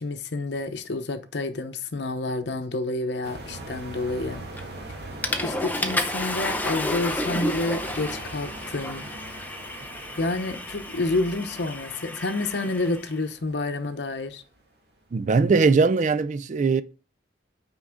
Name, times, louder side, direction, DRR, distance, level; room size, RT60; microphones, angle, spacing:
voice 1, 0.0-4.5 5.4-9.1 10.2-14.4, left 2 dB, 75° left, 0.8 m, -29 dB
sound 1, 3.2-14.6 15.0-15.2, right 1 dB, 65° right, 2.0 m, -41 dB
Water / Toilet flush, 4.6-4.8 5.2-13.1, left 1 dB, 10° left, 0.6 m, -31 dB
voice 2, 15.1-16.8, right 4 dB, 45° right, 0.4 m, -20 dB
6.1 x 5.3 x 3.6 m
head